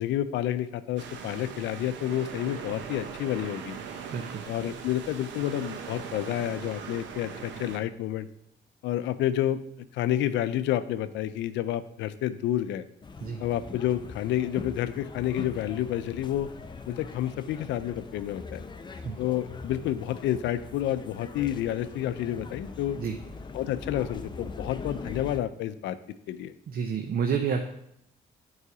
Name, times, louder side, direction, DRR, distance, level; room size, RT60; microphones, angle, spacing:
voice 1, 0.0-3.8 4.5-8.3 8.8-9.6 9.9-12.8 13.4-16.5 16.9-18.6 19.2-23.0 23.5-26.0 26.3-26.5, left 12 dB, 85° left, 13 dB, 0.4 m, -29 dB
sound 1, 1.0-7.8, right 6 dB, 90° right, 0.8 m, -40 dB
voice 2, 4.1-4.4 13.2-13.4 19.0-19.1 22.9-23.2 26.7-27.6, right 6 dB, 55° right, 5 dB, 0.7 m, -29 dB
sound 2, 13.0-25.4, left 4 dB, 25° left, 0.6 m, -41 dB
8.3 x 4.9 x 4.8 m, 0.76 s
cardioid pair, 100°, 18 cm